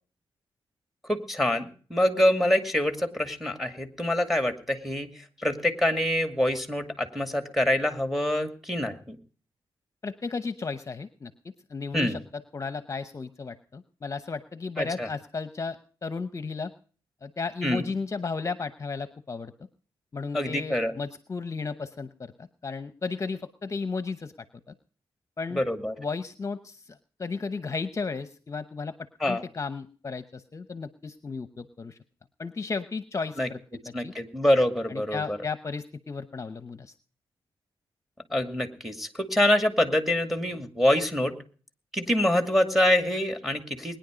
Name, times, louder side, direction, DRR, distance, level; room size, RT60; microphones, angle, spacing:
voice 1, 1.0-9.2 11.9-12.2 14.8-15.1 17.6-17.9 20.3-21.0 25.5-25.9 29.2-29.4 33.4-33.5 33.9-35.4 38.3-41.3 41.9-44.0, left 1 dB, ahead, 8 dB, 2.3 m, -25 dB
voice 2, 10.0-16.7 17.2-19.5 20.1-24.3 24.7-24.8 25.4-25.6 26.0-28.9 29.3-32.0 32.4-33.6 33.9-34.1 34.9-36.9, left 4 dB, 35° left, 12 dB, 0.9 m, -34 dB
21.0 x 10.5 x 5.1 m, 0.42 s
wide cardioid pair, 105°, 9 cm